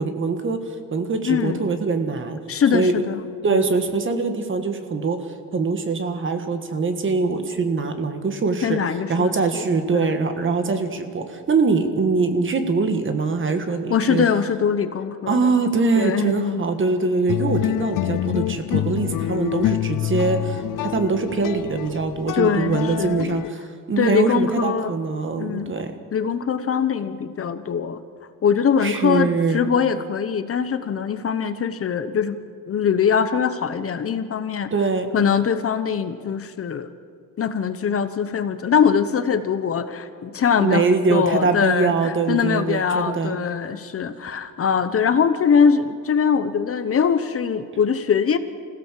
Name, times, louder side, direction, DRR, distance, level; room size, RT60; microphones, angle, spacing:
voice 1, 0.0-2.4 2.7-2.9 3.4-14.2 15.3-25.9 28.8-29.7 34.7-35.1 40.6-43.4, right 4 dB, 40° right, 7 dB, 1.6 m, -23 dB
voice 2, 1.3-1.6 2.5-3.2 3.5-3.6 8.6-9.6 9.9-10.1 13.9-15.5 16.0-16.6 22.4-23.2 24.0-24.9 25.4-25.7 26.1-28.0 28.4-32.4 32.7-34.7 35.1-36.9 37.4-48.4, left 7 dB, 45° left, 11 dB, 0.9 m, -22 dB
sound 1, 17.3-23.5, left 14 dB, 85° left, 0.5 m, -26 dB
26.0 x 16.0 x 7.5 m, 2.2 s
wide cardioid pair, 175°, 32 cm